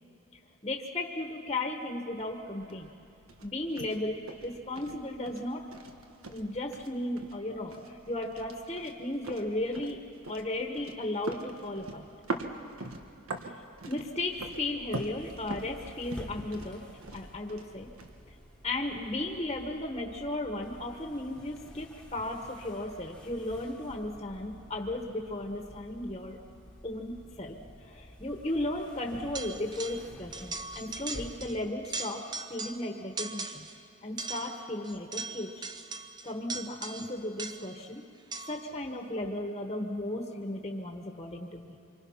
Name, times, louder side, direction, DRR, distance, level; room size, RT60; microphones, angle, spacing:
voice 1, 0.6-2.9 3.4-5.7 6.3-12.1 13.4-16.9 17.1-17.9 18.6-26.4 26.8-33.7 34.0-35.7 36.2-38.1 38.5-41.7, left 1 dB, 25° left, 2 dB, 1.3 m, -35 dB
sound 1, 2.1-19.1, right 2 dB, 85° right, 1.5 m, -44 dB
sound 2, 14.3-31.7, left 1 dB, 5° left, 1.4 m, -50 dB
sound 3, 29.4-30.1 30.3-31.6 31.8-32.9 33.2-33.8 34.2-37.8 38.3-38.7, right 3 dB, 20° right, 0.8 m, -39 dB
26.0 x 24.5 x 5.7 m, 2.9 s
head